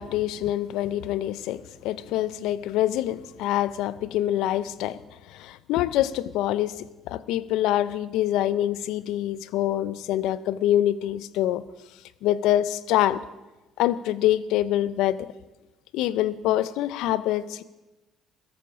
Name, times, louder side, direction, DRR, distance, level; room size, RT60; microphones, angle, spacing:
voice 1, 0.0-5.0 5.3-11.6 12.2-13.2 13.8-15.3 15.9-17.6, left 13 dB, 75° left, 17 dB, 0.6 m, -25 dB
17.0 x 14.0 x 5.0 m, 1.1 s
supercardioid pair, 65°, 0 cm